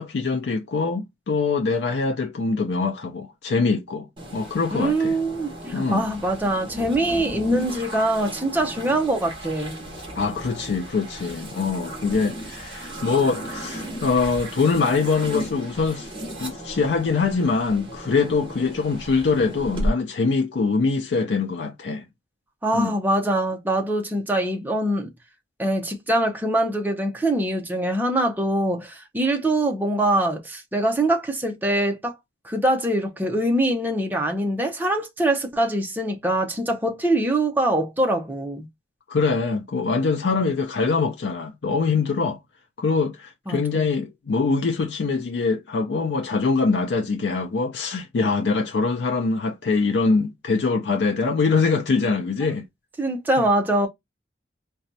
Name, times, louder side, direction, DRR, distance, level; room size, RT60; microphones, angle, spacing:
voice 1, 0.0-4.1 4.3-5.2 5.7-6.0 10.2-16.1 16.4-22.1 22.7-22.9 39.1-42.4 42.8-52.7, left 4 dB, 75° left, 0.4 m, -23 dB
sound 1, 4.2-19.9, equal, 25° right, 1.2 m, -34 dB
voice 2, 4.7-9.8 22.6-25.1 25.6-32.1 32.4-38.7 43.5-43.9 53.0-53.9, right 1 dB, 10° right, 0.6 m, -23 dB
4.0 x 2.2 x 2.6 m
head